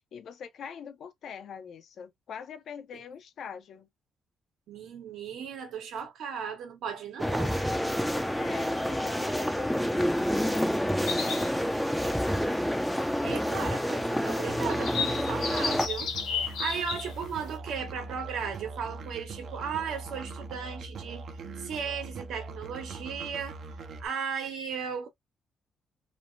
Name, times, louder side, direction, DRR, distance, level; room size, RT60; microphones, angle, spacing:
voice 1, 0.0-3.9 8.3-11.1, left 7 dB, 60° left, 0.5 m, -43 dB
voice 2, 4.7-7.6 13.2-21.3 21.6-23.6 24.0-25.1, right 7 dB, 75° right, 1.2 m, -36 dB
sound 1, 7.2-15.9, equal, ahead, 0.4 m, -28 dB
sound 2, 11.1-17.6, left 6 dB, 85° left, 1.0 m, -36 dB
Musical instrument, 14.5-24.1, right 3 dB, 55° right, 0.5 m, -41 dB
3.1 x 2.0 x 2.5 m
cardioid pair, 135°, 0 cm